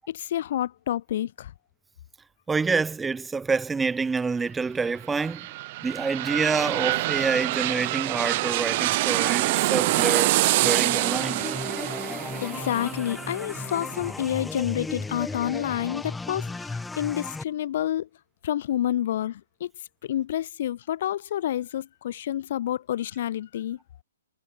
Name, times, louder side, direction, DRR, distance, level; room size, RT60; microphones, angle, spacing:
voice 1, 0.0-1.5 12.2-18.1 18.4-19.7 20.0-23.8, left 12 dB, 50° left, 0.8 m, -29 dB
voice 2, 2.5-5.5 5.8-11.4, right 4 dB, 10° right, 1.1 m, -27 dB
sound 1, 5.0-14.6 15.0-15.1, right 19 dB, 40° right, 1.7 m, -26 dB
sound 2, 10.6-17.4, left 3 dB, 5° left, 3.4 m, -35 dB
figure-of-eight pair, 125°, 0 cm